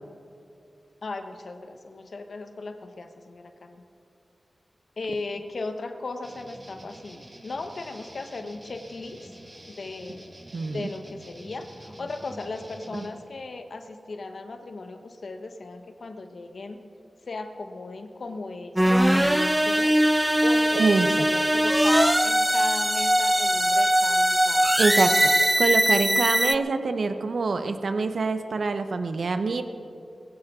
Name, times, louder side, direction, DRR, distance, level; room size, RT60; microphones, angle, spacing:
voice 1, 1.0-3.8 5.0-9.3 9.7-10.3 10.7-16.8 17.3-20.0 20.4-24.7, left 3 dB, 65° left, 6 dB, 1.0 m, -37 dB
sound 1, 6.2-13.1, right 1 dB, 25° right, 1.9 m, -47 dB
voice 2, 10.5-10.9 12.9-13.1 20.7-21.1 24.8-29.6, right 4 dB, 75° right, 8 dB, 0.8 m, -25 dB
sound 2, 18.8-26.5, right 1 dB, 10° right, 0.3 m, -21 dB
20.5 x 16.0 x 3.7 m, 2.6 s
wide cardioid pair, 85°, 0 cm